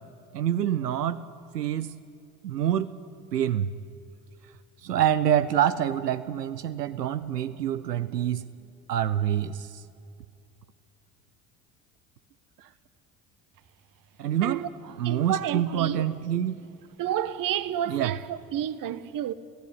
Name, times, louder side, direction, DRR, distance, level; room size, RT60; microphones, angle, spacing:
voice 1, 0.3-1.2 1.5-1.9 2.4-2.9 3.3-3.7 4.8-8.4 8.9-9.8 12.6-12.7 14.2-16.6 17.9-18.1, right 10 dB, 85° right, 0.7 m, -26 dB
voice 2, 15.0-16.0 17.0-19.3, right 10 dB, 45° right, 1.2 m, -30 dB
26.5 x 15.5 x 9.7 m
figure-of-eight pair, 60°, 47 cm